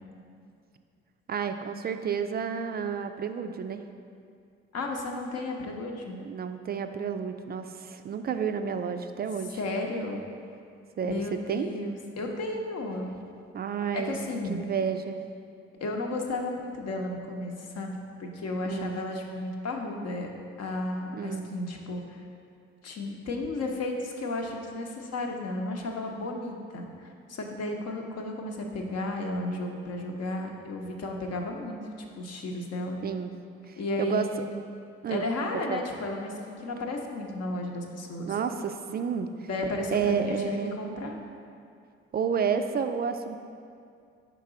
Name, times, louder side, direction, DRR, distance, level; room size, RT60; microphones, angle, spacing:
voice 1, 1.3-3.8 6.2-9.6 11.0-11.2 11.5-11.7 13.5-14.2 14.5-15.2 18.6-18.9 21.1-21.5 33.0-33.3 34.0-34.3 35.0-35.2 35.7-35.8 38.3-39.5 39.9-40.8 42.1-43.4, right 7 dB, 30° right, 8 dB, 0.4 m, -30 dB
voice 2, 4.7-6.2 9.5-10.2 11.0-13.1 13.9-14.6 15.8-20.3 20.6-22.2 22.8-31.8 32.2-33.0 33.8-34.5 35.1-38.3 39.5-41.2, left 2 dB, 50° left, 2 dB, 0.8 m, -33 dB
5.2 x 4.0 x 4.9 m, 2.3 s
figure-of-eight pair, 40°, 32 cm